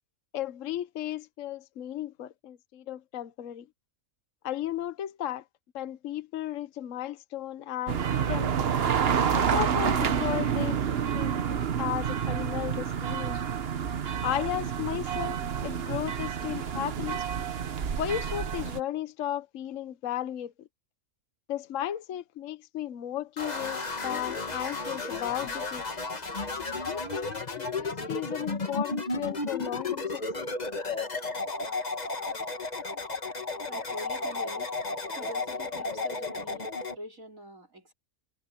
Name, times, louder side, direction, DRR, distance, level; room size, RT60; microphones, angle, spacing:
voice 1, 0.3-3.7 4.4-5.4 5.7-8.7 9.3-13.4 14.2-17.2 18.0-20.7 21.5-25.8 26.7-30.5, left 11 dB, 60° left, 1.1 m, -35 dB
sound 1, 7.9-18.8, right 7 dB, 45° right, 1.0 m, -29 dB
sound 2, 23.4-37.0, left 3 dB, 30° left, 1.6 m, -33 dB
voice 2, 33.7-34.7 35.1-37.9, left 1 dB, 65° right, 4.9 m, -44 dB
omnidirectional pair, 1.5 m